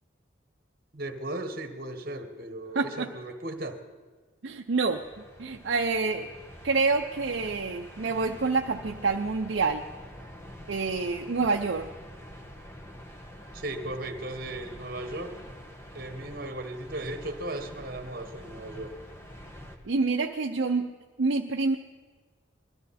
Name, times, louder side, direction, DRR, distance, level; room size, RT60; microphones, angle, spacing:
voice 1, 0.9-3.8 13.5-15.4 15.9-18.9, right 1 dB, 50° right, 7 dB, 1.3 m, -36 dB
voice 2, 2.7-3.1 4.4-5.0 5.4-6.3 6.6-9.8 10.7-11.9 19.9-20.9 21.2-21.8, right 4 dB, 65° right, 2 dB, 0.6 m, -27 dB
sound 1, 4.7-19.8, equal, 15° left, 1.2 m, -46 dB
21.0 x 13.5 x 4.2 m, 1.4 s
head